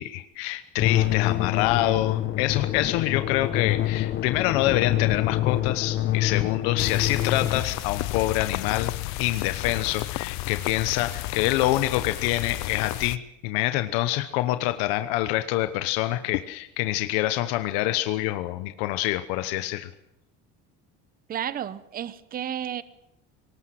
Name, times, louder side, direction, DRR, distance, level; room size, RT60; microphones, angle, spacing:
voice 1, 0.0-8.9 9.2-19.9, left 15 dB, 85° left, 10 dB, 1.1 m, -26 dB
sound 1, 0.8-7.6, left 13 dB, 40° left, 1.2 m, -26 dB
sound 2, 6.8-13.2, left 19 dB, 65° left, 0.8 m, -32 dB
voice 2, 21.3-22.8, right 9 dB, 30° right, 15 dB, 0.9 m, -32 dB
23.5 x 19.5 x 7.7 m, 0.82 s
cardioid pair, 145°, 30 cm